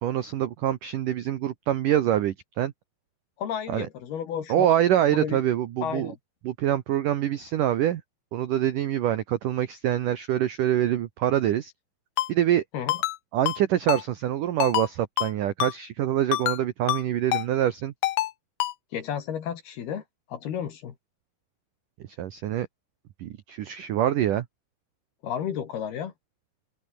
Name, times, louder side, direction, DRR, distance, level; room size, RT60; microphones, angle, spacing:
voice 1, 0.0-2.7 3.7-3.9 4.5-6.1 6.4-8.0 8.3-11.7 12.3-12.6 13.3-17.9 22.2-22.7 23.2-24.5, right 11 dB, 90° right, 1.8 m, -25 dB
voice 2, 3.4-4.7 5.1-5.4 5.8-6.2 12.7-13.0 18.9-20.0 20.3-20.9 25.2-26.1, left 8 dB, 60° left, 3.8 m, -32 dB
Ringtone, 12.2-12.3 12.9-13.2 13.5-13.6 13.9-14.0 14.6-14.9 15.2-15.3 15.6-15.7 16.3-16.6 16.9-17.0 17.3-17.5 18.0-18.3 18.6-18.7, left 16 dB, 80° left, 2.2 m, -26 dB
omnidirectional pair, 5.6 m